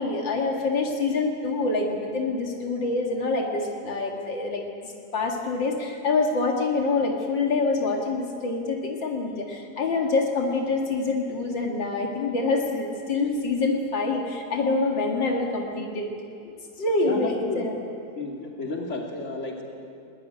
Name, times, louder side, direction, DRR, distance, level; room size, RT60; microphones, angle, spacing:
voice 1, 0.0-4.6 5.1-16.1 16.4-16.5 16.8-17.8, left 3 dB, 80° left, 1 dB, 2.7 m, -26 dB
voice 2, 17.0-17.7 18.1-19.6, left 2 dB, 40° left, 0 dB, 3.1 m, -32 dB
20.5 x 19.0 x 9.9 m, 2.5 s
omnidirectional pair, 2.0 m